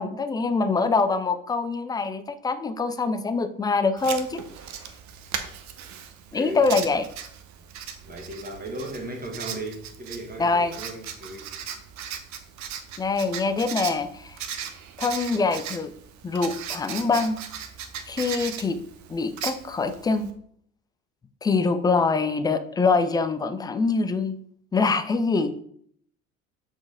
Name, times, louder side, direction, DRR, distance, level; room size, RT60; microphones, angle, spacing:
voice 1, 0.0-4.4 6.3-7.0 10.4-10.7 13.0-14.4 15.0-15.9 16.2-17.4 18.1-18.8 19.1-20.3 21.4-24.4 24.7-25.5, left 4 dB, 10° left, 10 dB, 0.3 m, -24 dB
Writing, 4.0-20.3, right 8 dB, 40° right, 0.9 m, -38 dB
voice 2, 6.3-6.9 8.0-11.5, right 1 dB, 20° right, 2 dB, 1.5 m, -36 dB
7.6 x 4.4 x 3.5 m, 0.64 s
figure-of-eight pair, 60°, 42 cm